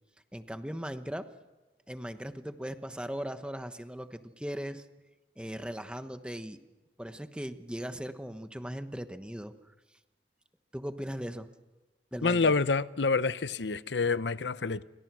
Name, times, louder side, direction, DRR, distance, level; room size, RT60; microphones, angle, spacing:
voice 1, 0.3-1.3 1.9-4.9 5.4-6.6 7.0-9.5 10.7-11.5 12.1-12.5, equal, 5° right, 1.1 m, -38 dB
voice 2, 12.2-14.8, left 4 dB, 90° left, 0.8 m, -27 dB
29.0 x 24.5 x 6.3 m
head